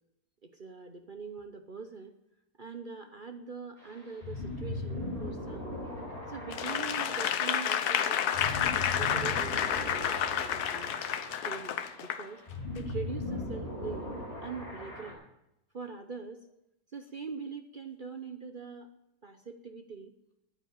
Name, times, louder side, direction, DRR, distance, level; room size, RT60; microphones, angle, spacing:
voice 1, 0.4-2.2 2.6-5.8 6.3-8.5 8.8-11.0 11.5-12.4 12.7-15.2 15.7-16.5 16.9-18.9 19.2-20.2, right 5 dB, 40° right, 7 dB, 0.7 m, -43 dB
sound 1, 3.8-15.1, left 2 dB, 20° left, 5.2 m, -39 dB
Applause / Crowd, 6.5-12.2 12.8-12.9, left 9 dB, 70° left, 1.3 m, -30 dB
9.9 x 9.5 x 9.3 m, 0.86 s
omnidirectional pair, 1.8 m